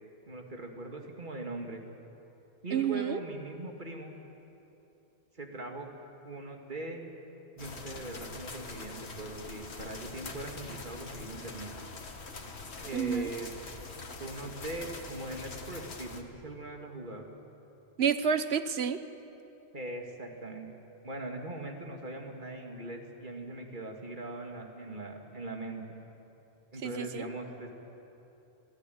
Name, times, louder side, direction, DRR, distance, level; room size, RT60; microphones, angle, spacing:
voice 1, 0.3-1.8 2.6-4.1 5.3-5.9 6.2-7.0 7.6-11.7 12.8-13.6 14.2-17.3 19.7-20.7 21.0-25.8 26.7-27.7, right 2 dB, 50° right, 2 dB, 2.6 m, -40 dB
voice 2, 2.7-3.2 12.9-13.3 18.0-19.0 26.8-27.3, right 7 dB, 75° right, 11 dB, 1.2 m, -29 dB
sound 1, 7.6-16.2, left 3 dB, 85° left, 1.9 m, -44 dB
27.0 x 17.0 x 9.4 m, 3.0 s
omnidirectional pair, 1.1 m